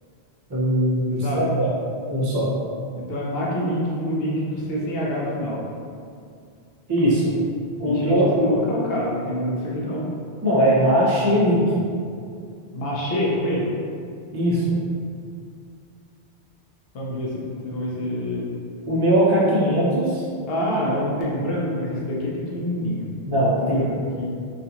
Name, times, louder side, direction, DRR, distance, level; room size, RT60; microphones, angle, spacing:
voice 1, 0.5-1.7 2.1-2.5 6.9-7.3 7.8-8.5 10.4-11.6 14.3-14.6 18.9-20.2 23.3-23.9, equal, 35° right, -6 dB, 0.4 m, -20 dB
voice 2, 1.1-1.5 3.0-5.6 7.9-10.1 12.7-13.7 16.9-18.5 20.5-23.1 23.6-24.3, equal, 65° left, -4 dB, 0.7 m, -26 dB
2.4 x 2.4 x 2.7 m, 2.4 s
omnidirectional pair, 1.1 m